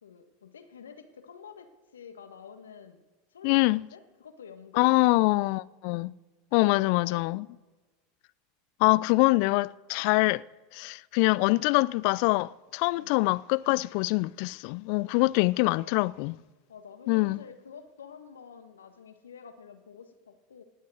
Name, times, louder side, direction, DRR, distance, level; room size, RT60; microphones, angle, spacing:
voice 1, 0.0-3.0 3.3-5.3 6.5-7.3 12.9-13.1 15.6-16.2 16.7-20.6, left 6 dB, 80° left, 1.7 m, -49 dB
voice 2, 3.4-3.8 4.8-6.1 6.5-7.4 8.8-10.4 10.7-16.3 17.1-17.4, left 23 dB, 55° left, 0.4 m, -24 dB
19.0 x 9.4 x 6.4 m
hypercardioid pair, 85°, 0 cm